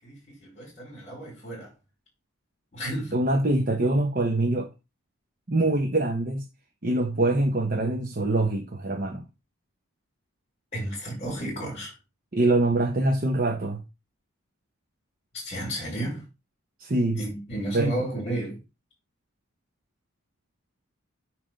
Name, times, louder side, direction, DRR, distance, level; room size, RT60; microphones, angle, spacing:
voice 1, 0.0-1.7 2.7-3.1 10.7-11.9 15.3-16.2 17.1-18.6, right 1 dB, 30° left, 4.7 m, -32 dB
voice 2, 3.1-4.7 5.5-6.4 6.8-9.2 12.3-13.8 16.8-17.2 17.7-17.9, right 2 dB, 40° right, 0.9 m, -24 dB
8.9 x 3.3 x 6.3 m
head